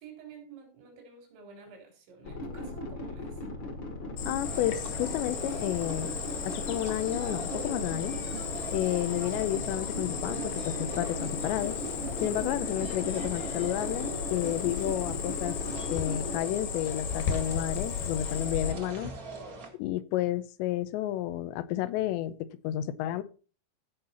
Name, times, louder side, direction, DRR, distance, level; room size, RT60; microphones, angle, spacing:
voice 1, 0.0-3.4, right 5 dB, 85° right, 5.8 m, -50 dB
sound 1, 2.2-16.4, left 2 dB, 45° left, 1.6 m, -38 dB
Cricket, 4.2-18.7, left 7 dB, 65° left, 3.3 m, -36 dB
voice 2, 4.3-6.1 6.5-8.2 8.7-11.8 12.2-15.6 15.9-19.1 19.8-23.2, left 13 dB, 90° left, 3.0 m, -31 dB
sound 2, 4.4-19.7, right 2 dB, 45° right, 1.1 m, -42 dB
15.5 x 5.7 x 4.2 m
omnidirectional pair, 5.0 m